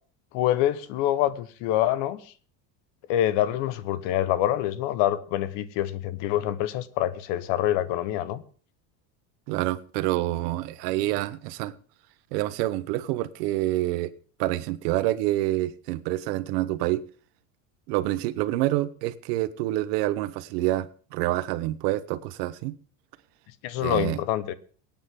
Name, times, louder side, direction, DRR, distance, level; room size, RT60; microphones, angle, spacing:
voice 1, 0.3-2.2 3.1-8.4 23.6-24.5, left 12 dB, 65° left, 1.3 m, -26 dB
voice 2, 9.5-11.7 12.3-14.1 14.4-17.0 17.9-22.7 23.8-24.2, right 16 dB, 85° right, 1.2 m, -27 dB
24.5 x 9.0 x 3.8 m
cardioid pair, 150°, 47 cm